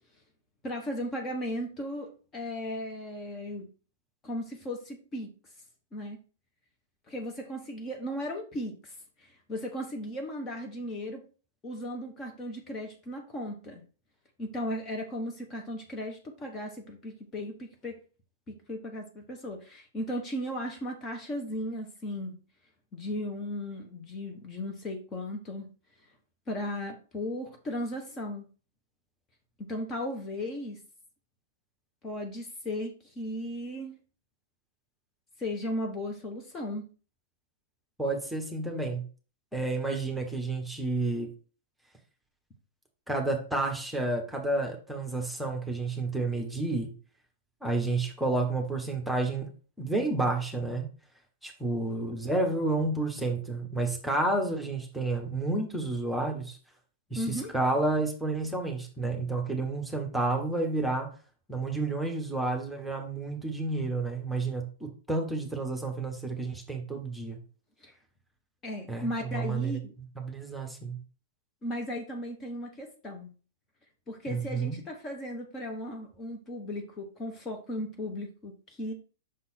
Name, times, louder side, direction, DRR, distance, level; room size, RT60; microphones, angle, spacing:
voice 1, 0.6-3.7 4.2-5.3 5.9-6.2 7.1-8.9 9.2-11.2 11.6-13.8 14.4-18.0 18.5-22.4 22.9-25.7 26.5-28.5 29.6-30.8 32.0-34.0 35.4-36.9 57.1-57.5 67.8-67.9 68.6-69.9 71.6-73.3 74.1-78.9, left 1 dB, 20° left, 2 dB, 1.2 m, -36 dB
voice 2, 38.0-39.0 39.5-41.3 43.1-46.9 47.6-49.5 49.8-50.9 51.4-56.6 57.1-61.1 61.5-67.4 68.9-69.7 70.2-71.0 74.3-74.8, right 2 dB, ahead, 2 dB, 1.3 m, -30 dB
6.4 x 3.9 x 4.2 m, 0.36 s
figure-of-eight pair, 100°, 0 cm